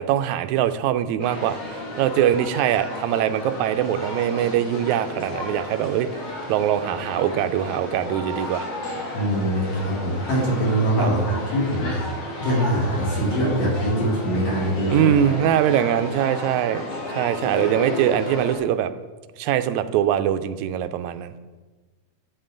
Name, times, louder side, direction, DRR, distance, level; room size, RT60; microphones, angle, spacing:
voice 1, 0.0-6.2 6.5-8.7 11.0-11.1 14.9-16.8 17.1-18.9 19.4-21.3, right 10 dB, 85° right, 10 dB, 1.9 m, -22 dB
sound 1, 1.2-18.6, left 2 dB, 90° left, 3.7 m, -33 dB
voice 2, 9.1-11.9 12.4-15.2, right 1 dB, 70° left, -6 dB, 4.8 m, -23 dB
11.0 x 8.8 x 3.8 m, 1.3 s
omnidirectional pair, 3.3 m